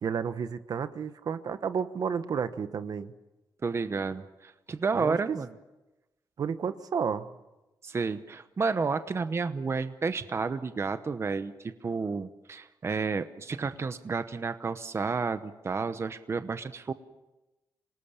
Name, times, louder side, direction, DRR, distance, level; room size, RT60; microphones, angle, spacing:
voice 1, 0.0-3.1 4.9-5.4 6.4-7.3, right 6 dB, 60° right, 12 dB, 1.1 m, -31 dB
voice 2, 3.6-5.5 7.8-16.9, right 4 dB, 35° right, 11 dB, 0.9 m, -31 dB
26.5 x 19.0 x 7.2 m, 1.0 s
cardioid pair, 95°, 7 cm